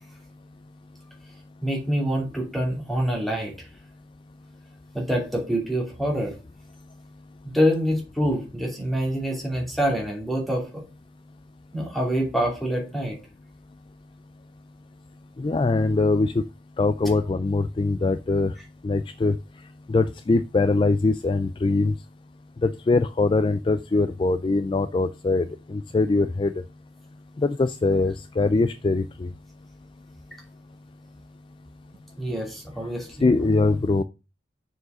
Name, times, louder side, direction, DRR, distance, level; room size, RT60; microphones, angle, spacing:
voice 1, 1.6-3.5 4.9-6.3 7.4-10.8 11.7-13.2 32.2-33.3, equal, ahead, -1 dB, 2.7 m, -26 dB
voice 2, 15.4-16.4 16.8-18.5 18.8-19.4 19.9-21.9 22.6-26.5 27.4-29.3 33.2-34.0, left 3 dB, 25° left, 12 dB, 0.3 m, -22 dB
6.6 x 4.8 x 6.1 m, 0.29 s
head